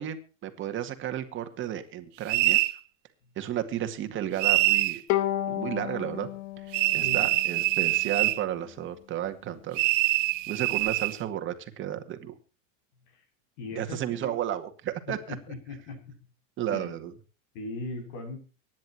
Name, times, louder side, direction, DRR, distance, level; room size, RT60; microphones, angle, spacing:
voice 1, 0.0-2.6 3.4-5.0 5.5-6.3 6.6-6.7 6.9-9.8 10.5-12.3 13.7-15.4 16.6-17.1, right 11 dB, 30° right, 8 dB, 2.1 m, -33 dB
sound 1, 2.3-2.8 4.4-5.0 6.7-8.4 9.8-11.2, right 19 dB, 65° right, 1.2 m, -24 dB
Bowed string instrument, 5.1-8.4, left 13 dB, 40° left, 1.0 m, -33 dB
voice 2, 13.6-14.3 15.1-16.2 16.7-16.9 17.5-18.4, left 2 dB, 60° left, 7 dB, 7.2 m, -39 dB
24.5 x 10.5 x 3.0 m, 0.35 s
supercardioid pair, 150°, 40 cm